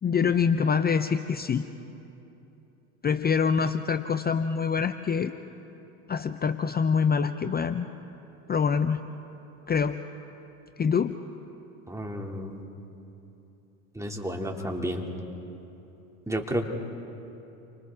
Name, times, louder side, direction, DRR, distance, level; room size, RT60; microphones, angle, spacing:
voice 1, 0.0-1.6 3.0-5.3 6.1-7.9 8.5-9.0 9.7-10.0 10.8-11.2, left 6 dB, 25° left, 10 dB, 0.7 m, -25 dB
voice 2, 11.9-12.6 13.9-15.0 16.3-16.7, equal, 5° right, 1 dB, 2.7 m, -31 dB
30.0 x 25.5 x 3.7 m, 2.9 s
hypercardioid pair, 75°, 41 cm